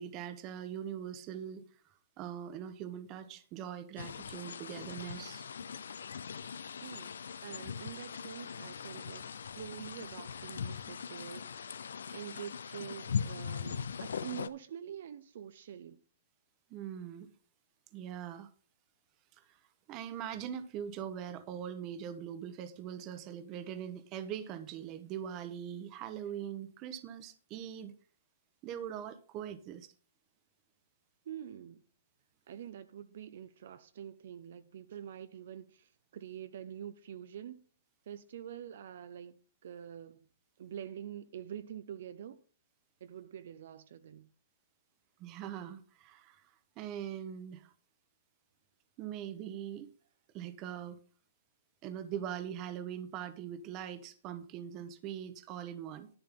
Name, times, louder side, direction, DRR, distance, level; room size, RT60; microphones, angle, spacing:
voice 1, 0.0-1.7 2.2-5.5 16.7-17.3 17.9-18.5 19.3-19.6 19.9-27.9 28.6-29.9 45.2-46.5 46.8-47.7 49.0-49.9 50.3-51.0 51.8-56.1, right 9 dB, 30° right, 1.1 m, -42 dB
sound 1, 4.0-14.5, left 7 dB, 90° left, 0.7 m, -40 dB
voice 2, 6.8-7.1 7.4-16.0 31.2-31.8 32.5-37.7 38.1-39.4 39.6-40.3 40.6-42.4 43.0-44.3, right 9 dB, 65° right, 0.8 m, -46 dB
11.0 x 8.8 x 3.8 m
hypercardioid pair, 155°, 0 cm